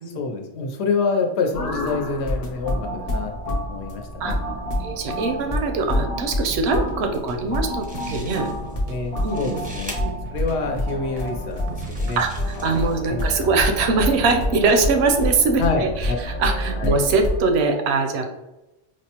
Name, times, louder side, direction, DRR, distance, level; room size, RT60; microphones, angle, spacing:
voice 1, 0.1-3.3 3.6-4.3 8.9-9.9 10.3-12.2 13.1-13.2 15.6-16.2 16.8-17.0, left 4 dB, 80° left, 3 dB, 0.9 m, -26 dB
sound 1, 1.5-17.4, left 1 dB, 40° left, 0.7 m, -28 dB
voice 2, 4.8-8.5 9.2-9.6 10.0-10.2 12.2-18.3, right 4 dB, 80° right, 5 dB, 0.8 m, -22 dB
sound 2, 6.5-12.9, equal, 55° right, 0.6 m, -39 dB
sound 3, 7.5-7.6 7.8-8.8 9.1-10.0 10.7-10.8 11.5-13.0, right 1 dB, 10° right, 0.5 m, -41 dB
4.7 x 2.1 x 2.8 m, 1.0 s
omnidirectional pair, 1.1 m